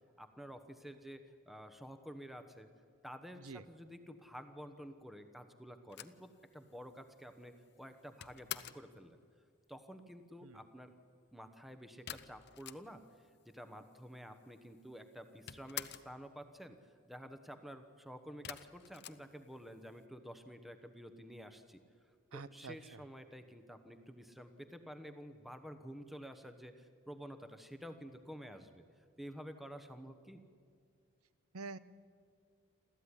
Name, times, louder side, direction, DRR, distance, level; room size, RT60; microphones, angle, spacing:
voice 1, 0.2-2.7 3.0-9.2 9.7-10.9 11.3-13.0 13.5-21.8 22.3-30.4, equal, ahead, 8 dB, 1.1 m, -51 dB
sound 1, 5.9-8.9 12.1-13.2 13.5-13.6 13.8-14.6 14.9-16.2 18.4-19.9, left 11 dB, 50° left, 0.7 m, -48 dB
voice 2, 22.3-23.0 31.5-31.8, right 4 dB, 90° right, 16 dB, 0.8 m, -47 dB
29.0 x 13.5 x 9.9 m, 2.2 s
head